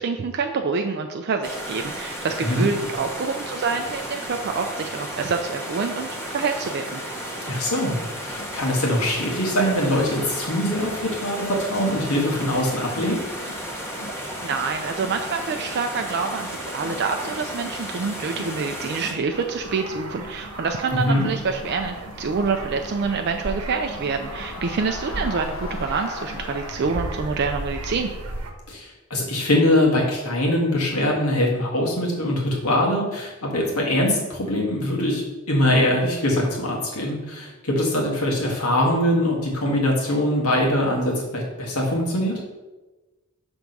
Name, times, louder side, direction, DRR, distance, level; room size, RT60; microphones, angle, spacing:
voice 1, 0.0-6.1 6.3-7.0 14.4-28.1, right 4 dB, 50° right, 4 dB, 0.4 m, -26 dB
sound 1, 1.4-19.1, equal, 10° left, 0.9 m, -34 dB
voice 2, 7.5-13.2 20.9-21.3 28.7-42.3, left 1 dB, 90° left, -1 dB, 1.6 m, -22 dB
Crowd, 7.8-27.3, left 2 dB, 65° left, 1.0 m, -42 dB
sound 2, 19.3-28.5, right 1 dB, 85° right, 0.9 m, -35 dB
6.0 x 3.5 x 5.3 m, 1.2 s
head